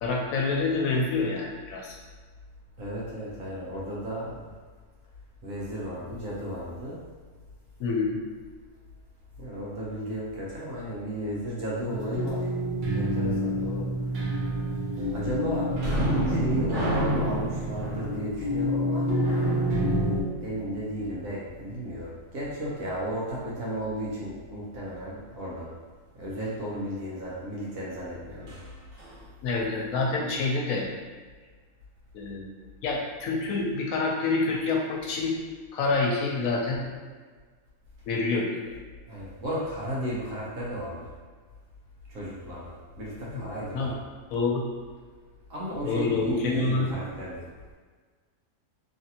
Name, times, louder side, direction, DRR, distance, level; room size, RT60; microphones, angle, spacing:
voice 1, 0.0-2.0 7.8-8.2 29.4-30.9 32.1-32.4 32.8-35.4 35.7-36.8 38.1-38.6 43.3-43.4 43.7-43.9 44.3-44.6 45.9-47.0, left 3 dB, 90° left, -1 dB, 1.1 m, -27 dB
voice 2, 2.8-4.5 5.4-7.0 9.4-12.5 12.9-13.9 15.1-15.7 16.0-19.1 20.4-25.7 26.1-28.6 39.1-41.1 42.1-44.0 45.5-47.4, equal, 85° right, -6 dB, 1.3 m, -34 dB
sound 1, 11.8-20.2, equal, 45° right, 0.7 m, -29 dB
sound 2, 15.7-21.1 28.5-28.6 29.0-29.2, equal, 65° right, 1.1 m, -30 dB
3.1 x 2.5 x 2.8 m, 1.5 s
omnidirectional pair, 1.4 m